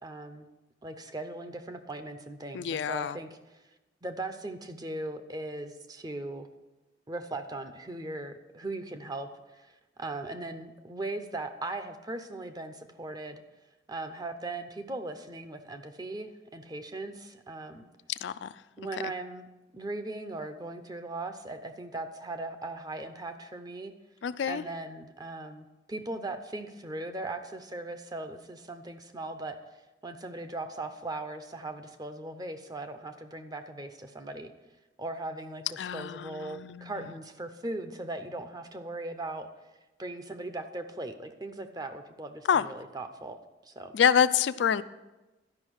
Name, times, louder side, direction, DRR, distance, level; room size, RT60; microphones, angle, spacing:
voice 1, 0.0-0.5 0.8-3.3 4.0-6.5 7.1-13.4 13.9-17.9 18.8-19.5 19.7-23.9 24.5-29.6 30.0-34.5 35.0-39.5 40.0-43.4 43.6-43.9, right 2 dB, 20° right, 8 dB, 0.6 m, -39 dB
voice 2, 2.5-3.2 18.1-18.6 18.9-19.1 24.2-24.6 35.8-37.1 42.5-42.7 43.9-44.8, left 8 dB, 75° left, 14 dB, 0.3 m, -27 dB
12.0 x 5.5 x 6.2 m, 1.1 s
head